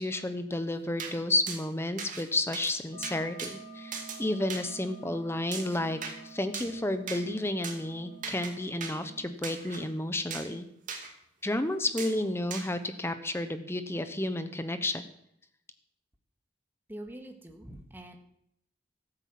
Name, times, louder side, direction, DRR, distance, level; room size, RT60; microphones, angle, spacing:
voice 1, 0.0-6.0 6.2-10.7 11.4-15.0, left 1 dB, 15° left, 10 dB, 0.8 m, -31 dB
sound 1, 1.0-1.1 1.5-1.6 2.0-2.2 2.5-2.7 3.0-3.5 3.9-4.2 4.5-4.6 5.5-6.2 6.5-6.7 7.1-7.2 7.6-7.8 8.2-8.5 8.8-8.9 9.4-9.8 10.3-10.5 10.9-11.1 12.0-12.1 12.5-12.7, right 5 dB, 45° right, 2.5 m, -38 dB
sound 2, 2.9-9.3, right 3 dB, 85° right, 3.9 m, -49 dB
voice 2, 16.9-18.2, right 1 dB, 10° right, 4 dB, 1.7 m, -44 dB
14.0 x 8.5 x 7.5 m, 0.75 s
head